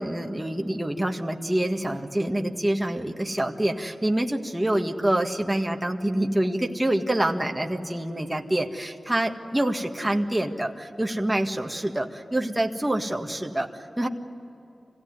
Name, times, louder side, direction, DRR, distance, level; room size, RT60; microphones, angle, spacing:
voice 1, 0.0-14.1, right 1 dB, 15° right, 3 dB, 1.8 m, -26 dB
25.5 x 17.0 x 9.5 m, 2.9 s
cardioid pair, 50°, 0 cm